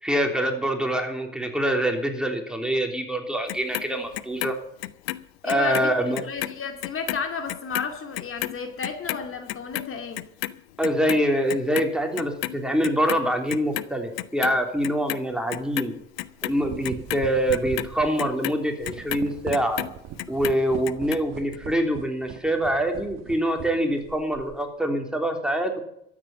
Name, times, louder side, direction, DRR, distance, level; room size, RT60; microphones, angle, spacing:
voice 1, 0.0-4.5 5.4-6.2 10.8-15.9 16.4-19.8 20.3-25.8, equal, 5° right, 3 dB, 3.5 m, -25 dB
Clock, 3.5-5.9 6.1-12.6 12.8-13.9 14.2-15.2 15.5-19.9 20.2-21.2 21.5-21.6, left 18 dB, 85° left, 0.6 m, -32 dB
voice 2, 5.4-6.0 6.3-10.2, left 5 dB, 45° left, 5 dB, 2.4 m, -32 dB
sound 1, 15.6-15.7 16.3-24.7, right 10 dB, 60° right, 1.4 m, -40 dB
13.0 x 8.7 x 8.6 m, 0.76 s
hypercardioid pair, 70°, 29 cm